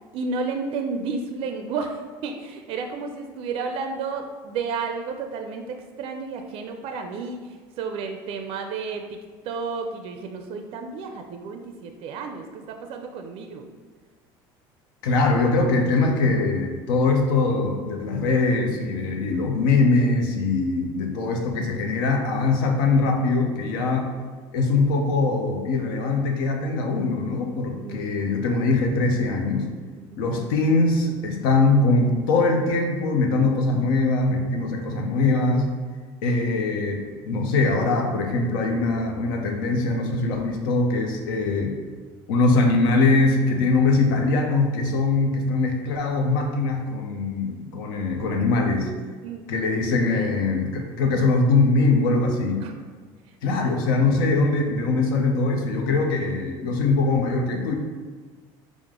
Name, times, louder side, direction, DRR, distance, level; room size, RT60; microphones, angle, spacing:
voice 1, 0.1-9.2 9.4-13.7 23.8-23.9 27.8-28.1 29.9-30.3 49.2-49.5 50.1-50.4 52.6-52.8 53.4-53.7, right 4 dB, 55° right, 5 dB, 0.4 m, -32 dB
voice 2, 15.0-24.1 24.5-29.7 30.2-35.7 36.2-41.8 42.3-48.9 49.5-52.6 53.4-57.7, left 3 dB, 85° left, 3 dB, 0.6 m, -22 dB
4.7 x 2.1 x 3.6 m, 1.5 s
supercardioid pair, 105°, 11 cm